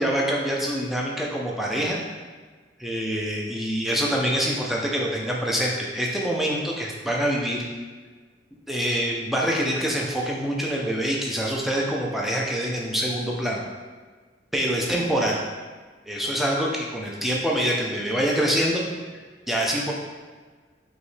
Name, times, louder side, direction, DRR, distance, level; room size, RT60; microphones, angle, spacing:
voice 1, 0.0-2.0 2.8-7.7 8.7-13.6 14.5-15.4 16.1-18.8 19.5-19.9, equal, ahead, -3 dB, 0.6 m, -25 dB
5.0 x 3.1 x 3.2 m, 1.4 s
head